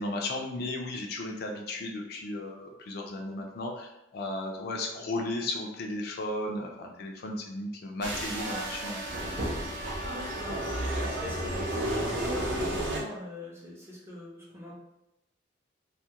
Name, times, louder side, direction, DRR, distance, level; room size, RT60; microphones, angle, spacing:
voice 1, 0.0-9.0, left 2 dB, 55° left, 1 dB, 0.4 m, -35 dB
sound 1, 8.0-13.0, right 1 dB, 80° right, 0.5 m, -32 dB
Wind instrument woodwind instrument, 8.4-12.2, equal, 90° left, 0.8 m, -44 dB
voice 2, 10.0-14.7, left 2 dB, 15° right, -4 dB, 0.6 m, -43 dB
2.3 x 2.1 x 2.7 m, 0.88 s
head